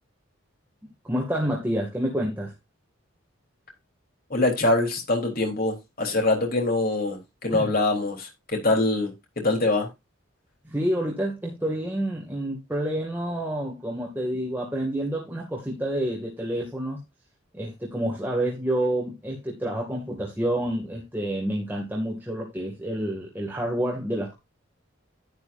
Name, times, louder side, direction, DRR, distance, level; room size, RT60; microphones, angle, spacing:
voice 1, 1.0-2.5 7.5-7.7 10.6-17.0 17.5-24.3, right 1 dB, 10° right, 2.2 m, -28 dB
voice 2, 4.3-9.9, left 2 dB, 45° left, 3.5 m, -24 dB
11.0 x 10.0 x 2.6 m
head